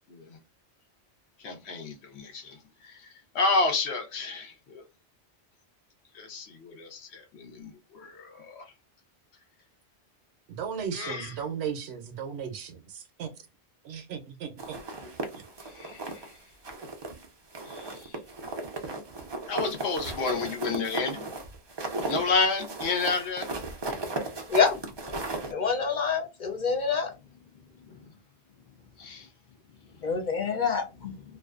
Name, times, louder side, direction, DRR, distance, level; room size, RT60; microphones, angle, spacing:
voice 1, 1.4-2.6 2.8-3.1 3.3-4.8 6.1-8.6 10.9-11.4 15.6-16.4 17.6-18.2 19.5-21.3 22.1-23.5 29.0-29.3, left 3 dB, 70° left, 1.0 m, -30 dB
voice 2, 10.5-13.3 13.8-14.8, right 7 dB, 70° right, 0.8 m, -36 dB
sound 1, 14.6-16.3 16.6-17.3 17.5-25.5, right 2 dB, 45° right, 0.3 m, -36 dB
voice 3, 25.5-27.1 30.0-31.1, left 5 dB, 55° left, 0.5 m, -26 dB
2.5 x 2.2 x 2.3 m
omnidirectional pair, 1.2 m